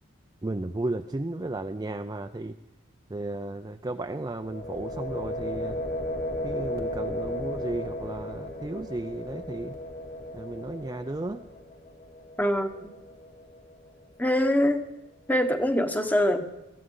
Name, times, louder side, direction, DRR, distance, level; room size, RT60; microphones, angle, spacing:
voice 1, 0.4-2.6 3.1-5.8 6.4-9.8 10.3-11.4, right 2 dB, 20° right, 6 dB, 0.4 m, -34 dB
sound 1, 4.4-14.2, left 1 dB, 50° left, 2.2 m, -36 dB
voice 2, 12.4-12.9 14.2-14.9 15.3-16.5, equal, 10° left, 7 dB, 1.0 m, -24 dB
22.0 x 15.0 x 3.8 m, 0.97 s
head